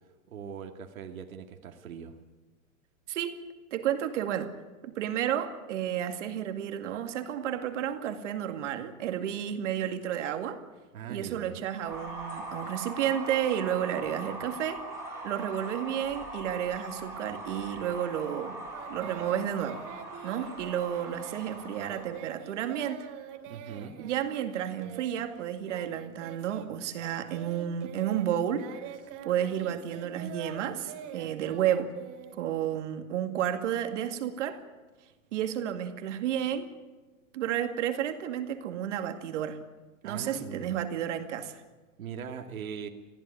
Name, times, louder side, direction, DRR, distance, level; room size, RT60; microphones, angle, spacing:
voice 1, 0.3-2.2 10.9-11.6 23.5-24.0 40.0-40.8 42.0-42.9, right 7 dB, 75° right, 4 dB, 2.3 m, -40 dB
voice 2, 3.7-4.5 4.8-10.6 11.1-14.8 15.2-18.6 18.9-19.8 20.2-23.1 24.0-28.7 29.2-31.9 32.3-34.6 35.3-36.7 37.3-39.6 40.0-41.6, right 10 dB, 60° right, 7 dB, 2.3 m, -31 dB
sound 1, 11.8-22.2, right 2 dB, 5° right, 7.8 m, -41 dB
Singing, 18.7-26.7 26.9-32.8, right 8 dB, 35° right, 2.7 m, -45 dB
20.5 x 15.0 x 9.8 m, 1.3 s
hypercardioid pair, 150°, 42 cm